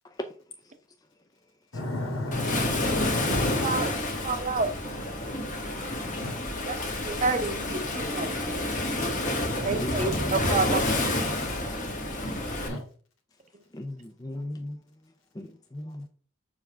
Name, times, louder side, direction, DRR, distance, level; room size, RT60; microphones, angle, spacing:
voice 1, 1.7-3.7 6.2-6.4 9.7-9.9 12.7-12.8, left 1 dB, 80° left, 2.4 m, -32 dB
Waves surf, 2.3-12.7, left 1 dB, 35° left, 1.5 m, -29 dB
voice 2, 4.2-4.7 6.7-6.8 7.0-8.3 9.6-11.1, right 3 dB, 35° right, 0.8 m, -29 dB
voice 3, 9.8-10.4 11.3-11.4 13.7-14.8 15.4-16.1, left 1 dB, 15° left, 0.4 m, -37 dB
7.0 x 5.0 x 3.4 m
head